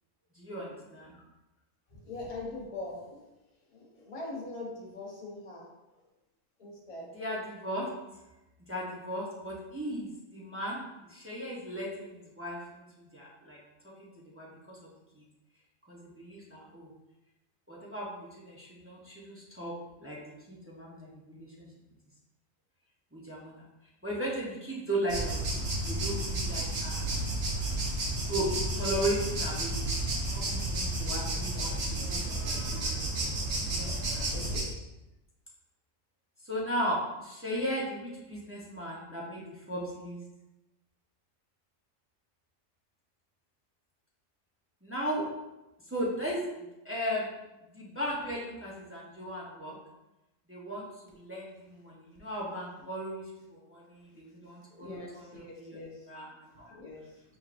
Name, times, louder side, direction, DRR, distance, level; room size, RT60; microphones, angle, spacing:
voice 1, 0.3-1.2 7.1-7.9 8.7-10.8 11.1-12.8 13.1-13.6 13.8-15.2 15.9-16.9 17.7-20.2 20.5-21.7 23.1-23.7 24.0-27.4 28.3-31.7 32.1-33.1 33.7-34.3 36.4-40.2 44.8-45.3 45.9-46.4 46.8-47.4 47.7-49.8 50.5-53.2 53.5-55.8 56.1-56.7, equal, 15° right, -5 dB, 0.4 m, -37 dB
voice 2, 2.0-3.2 3.7-5.6 5.9-6.0 6.6-7.1 30.8-31.0 31.7-31.8 32.4-32.6 33.7-34.7 51.1-51.2 54.7-56.1 56.6-57.2, left 2 dB, 30° left, -3 dB, 0.8 m, -43 dB
sound 1, 25.1-34.6, right 1 dB, 85° right, 1.3 m, -32 dB
4.6 x 3.4 x 2.5 m, 0.99 s
omnidirectional pair, 1.4 m